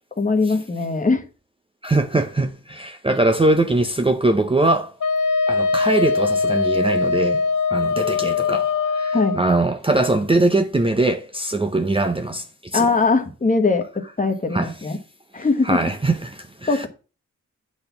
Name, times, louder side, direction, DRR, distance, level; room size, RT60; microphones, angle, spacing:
voice 1, 0.2-1.2 9.1-9.4 12.7-15.0 15.3-15.8 16.7-16.9, left 3 dB, 25° left, 1.4 m, -21 dB
voice 2, 1.8-4.9 5.5-7.4 7.7-12.9 14.5-14.7 15.4-16.9, right 2 dB, 15° right, 0.6 m, -21 dB
Wind instrument woodwind instrument, 5.0-9.4, left 4 dB, 80° left, 0.8 m, -21 dB
8.7 x 4.1 x 6.9 m
wide cardioid pair, 125°, 31 cm